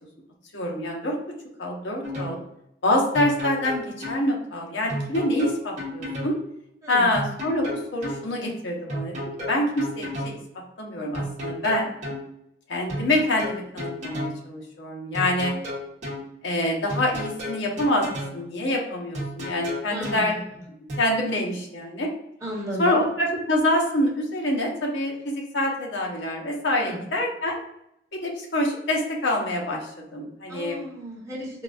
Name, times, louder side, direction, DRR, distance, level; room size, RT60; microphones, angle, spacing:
voice 1, 0.5-1.2 1.6-2.4 2.8-6.4 6.9-10.4 10.8-11.9 12.7-15.5 16.4-18.1 18.3-20.3 21.0-22.1 22.8-27.6 28.1-30.8, left 1 dB, 75° left, 0 dB, 0.8 m, -26 dB
sound 1, 2.0-2.4 3.1-4.2 4.9-6.3 7.1-8.2 8.9-10.4 11.1-12.2 12.9-14.4 15.1-16.2 16.9-18.4 19.1-20.2 20.9-21.0, equal, 40° right, 0.9 m, -32 dB
voice 2, 19.9-20.6 22.4-23.1 26.8-27.0 30.5-31.6, equal, 15° right, -6 dB, 1.1 m, -34 dB
3.8 x 2.3 x 2.4 m, 0.79 s
head